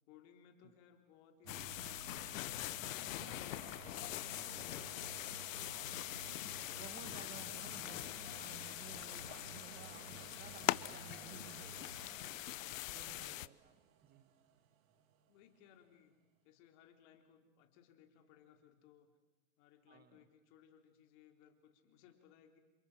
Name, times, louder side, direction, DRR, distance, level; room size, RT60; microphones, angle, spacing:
voice 1, 0.1-2.4 2.8-5.8 6.3-8.2 11.5-11.8 12.6-13.2 15.3-16.2 16.4-19.1 19.6-22.6, left 9 dB, 55° left, 5 dB, 3.9 m, -65 dB
sound 1, 1.4-15.1 15.7-15.8, right 6 dB, 75° right, 2.8 m, -55 dB
sound 2, 1.5-13.5, left 16 dB, 75° left, 0.9 m, -43 dB
voice 2, 6.8-12.0 12.4-14.3 19.9-20.2, right 8 dB, 25° right, 11 dB, 1.4 m, -57 dB
28.5 x 26.5 x 7.5 m, 1.2 s
supercardioid pair, 130°, 40 cm